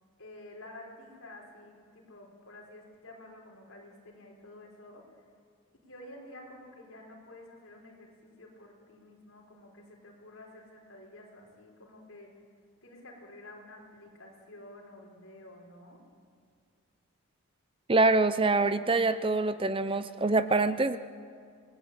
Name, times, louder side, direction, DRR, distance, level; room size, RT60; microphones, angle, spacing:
voice 1, 0.2-5.0 5.8-12.3 12.8-16.0, left 1 dB, 65° left, -1 dB, 5.4 m, -50 dB
voice 2, 17.9-21.0, right 3 dB, 25° right, 12 dB, 0.6 m, -25 dB
27.0 x 19.5 x 8.7 m, 2.2 s
head